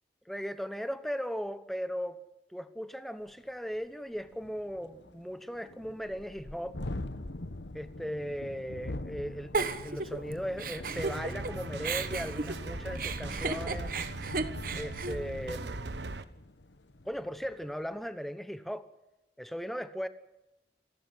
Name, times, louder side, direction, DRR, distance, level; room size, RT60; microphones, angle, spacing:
voice 1, 0.3-2.2 2.5-6.7 7.7-13.9 14.8-15.9 17.0-18.9 19.4-20.1, equal, ahead, 1.1 m, -37 dB
Thunderstorm, 3.3-3.4 3.7-3.8 4.1-17.8, left 2 dB, 90° left, 1.2 m, -44 dB
Giggle, 9.5-11.5 11.8-16.1, right 4 dB, 50° right, 1.2 m, -35 dB
sound 1, 10.9-16.2, right 2 dB, 85° right, 1.2 m, -39 dB
27.5 x 12.0 x 9.8 m
head